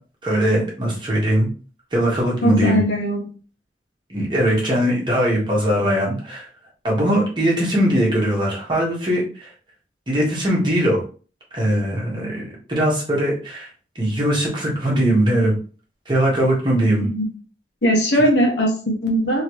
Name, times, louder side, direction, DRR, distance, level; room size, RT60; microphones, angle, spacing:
voice 1, 0.2-1.5 1.9-2.8 4.1-6.5 6.8-9.5 10.1-11.0 11.5-13.7 13.9-15.5 16.1-17.1 18.2-18.3, right 1 dB, 25° right, -3 dB, 1.3 m, -20 dB
voice 2, 2.4-3.2 17.0-17.3 17.8-19.4, equal, 80° left, 1 dB, 1.2 m, -19 dB
3.1 x 3.0 x 3.1 m, 0.38 s
head